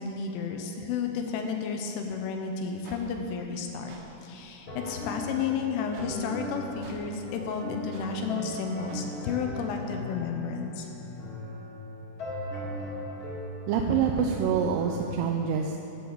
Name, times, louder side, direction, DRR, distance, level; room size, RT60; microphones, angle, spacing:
voice 1, 0.0-3.9 4.2-10.9, left 6 dB, 80° left, 3 dB, 3.1 m, -32 dB
sound 1, 2.8-3.0 3.9-4.0 4.8-5.0 5.9-6.1 6.8-7.0 7.9-8.1 8.9-9.0, right 4 dB, 70° right, 2.6 m, -47 dB
sound 2, 4.7-15.1, equal, 45° left, 1.6 m, -38 dB
voice 2, 13.7-15.8, right 6 dB, 85° right, 1 dB, 3.2 m, -26 dB
17.5 x 6.8 x 3.9 m, 2.9 s
omnidirectional pair, 5.8 m